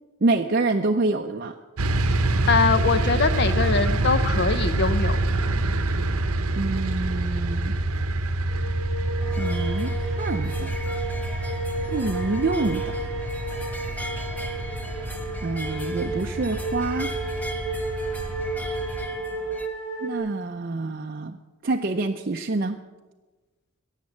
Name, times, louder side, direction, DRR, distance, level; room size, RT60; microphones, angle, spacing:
voice 1, 0.2-1.5 6.5-7.7 9.4-10.7 11.9-12.9 15.4-17.1 20.0-21.4 21.6-22.8, right 3 dB, 40° right, 3 dB, 0.5 m, -26 dB
sound 1, 1.8-19.1, right 2 dB, 80° right, 0.9 m, -27 dB
voice 2, 2.5-5.2, left 4 dB, 50° left, 11 dB, 0.5 m, -22 dB
sound 2, 8.5-20.2, right 2 dB, 85° left, 4.0 m, -33 dB
sound 3, 9.2-19.7, equal, 5° left, 0.9 m, -39 dB
17.5 x 7.3 x 7.1 m, 1.2 s
head